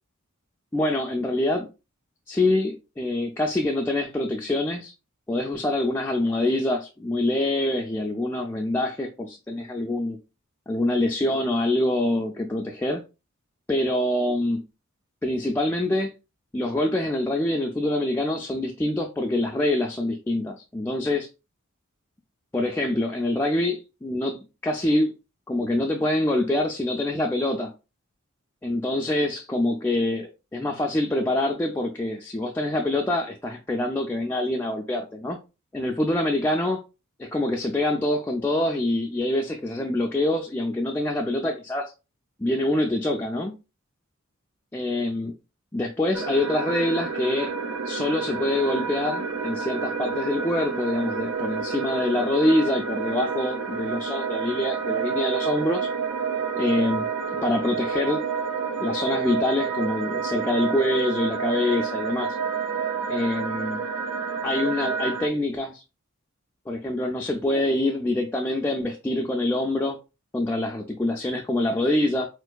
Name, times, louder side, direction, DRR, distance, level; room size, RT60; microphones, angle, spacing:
voice 1, 0.7-1.7 2.3-4.9 5.3-10.2 10.7-13.0 13.7-14.6 15.2-16.1 16.5-21.3 22.5-25.1 25.5-27.7 28.6-35.4 35.7-36.8 37.2-41.9 42.4-43.5 44.7-45.3 45.7-47.5 47.8-55.9 56.6-57.1 57.4-58.2 58.8-62.4 63.1-63.8 64.4-65.8 66.7-70.0 70.3-72.3, left 1 dB, 10° left, 0.3 m, -25 dB
sound 1, 46.1-65.3, right 5 dB, 75° right, 0.5 m, -29 dB
4.5 x 2.5 x 2.2 m
head